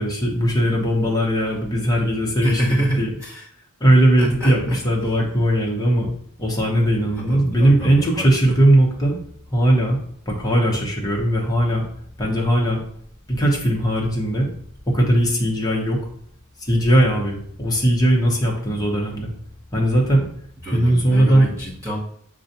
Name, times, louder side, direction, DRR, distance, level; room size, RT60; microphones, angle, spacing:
voice 1, 0.0-3.1 3.8-6.1 6.4-9.1 9.5-10.0 10.3-11.8 12.2-12.8 13.3-14.5 14.9-16.0 16.6-19.3 19.7-20.3 20.7-21.5, right 1 dB, 15° left, -2 dB, 0.9 m, -19 dB
voice 2, 2.4-3.5 4.2-4.8 7.2-8.5 20.6-22.0, right 1 dB, 15° right, -6 dB, 1.1 m, -27 dB
6.7 x 2.4 x 2.7 m, 0.63 s
head